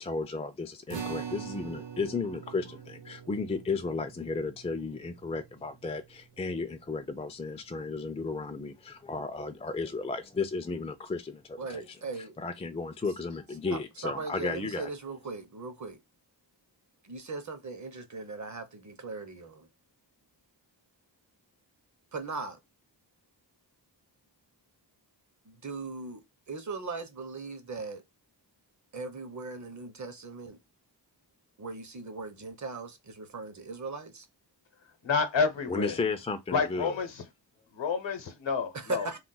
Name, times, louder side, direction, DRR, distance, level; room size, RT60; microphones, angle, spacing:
voice 1, 0.0-14.9 35.7-37.0, left 4 dB, 15° left, 0.3 m, -34 dB
sound 1, 0.9-7.5, right 8 dB, 75° right, 0.8 m, -44 dB
voice 2, 11.6-12.3 13.7-16.0 17.0-19.7 22.1-22.6 25.5-26.2 26.5-28.0 28.9-30.6 31.6-34.2 38.7-39.2, right 4 dB, 40° right, 0.6 m, -39 dB
voice 3, 35.0-35.9 36.5-37.1 37.7-39.1, left 5 dB, 75° left, 0.8 m, -29 dB
2.4 x 2.1 x 3.8 m
cardioid pair, 50°, 45 cm